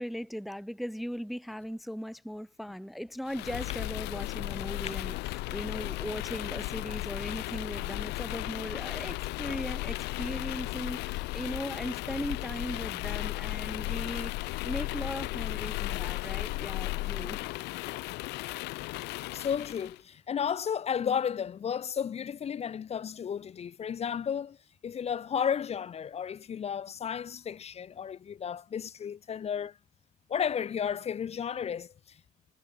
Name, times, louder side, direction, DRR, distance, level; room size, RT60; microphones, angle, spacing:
voice 1, 0.0-17.5, equal, ahead, 0.6 m, -38 dB
sound 1, 3.3-20.0, left 21 dB, 90° left, 0.9 m, -35 dB
voice 2, 19.3-24.6 24.8-29.7 30.3-31.9, left 8 dB, 40° left, 0.9 m, -33 dB
cardioid pair, 110°, 17 cm